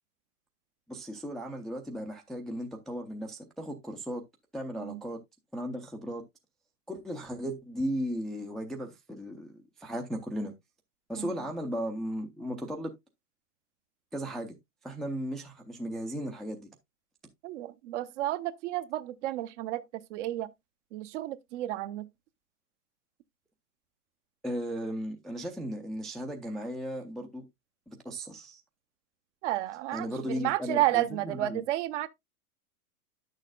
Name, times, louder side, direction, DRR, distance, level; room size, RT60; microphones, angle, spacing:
voice 1, 0.9-4.2 4.5-5.2 5.5-6.2 6.9-10.5 11.1-12.9 14.1-14.5 14.8-16.7 24.4-27.4 27.9-28.6 29.9-31.6, equal, ahead, 0.4 m, -36 dB
voice 2, 17.4-19.8 20.1-20.5 20.9-22.1 29.4-32.1, right 15 dB, 50° right, 0.8 m, -31 dB
10.5 x 6.5 x 2.3 m
hypercardioid pair, 110°, 46 cm